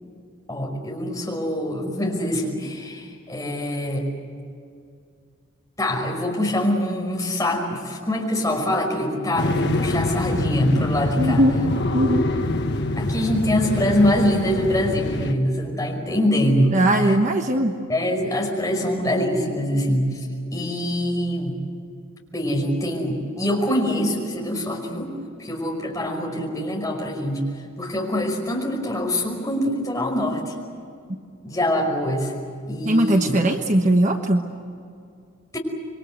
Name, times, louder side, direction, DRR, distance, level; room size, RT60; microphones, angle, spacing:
voice 1, 0.5-4.1 5.8-11.4 13.0-17.2 17.9-21.6 22.3-25.1 25.4-27.4 27.8-30.5 31.4-32.3 32.7-33.4 35.5-35.6, left 1 dB, 15° left, 0 dB, 5.3 m, -24 dB
sound 1, 9.4-15.3, left 2 dB, 50° left, 1.4 m, -25 dB
voice 2, 11.2-11.6 11.9-12.3 16.7-17.7 32.8-34.4, right 1 dB, 35° right, 4 dB, 1.2 m, -19 dB
27.5 x 22.5 x 8.0 m, 2.4 s
head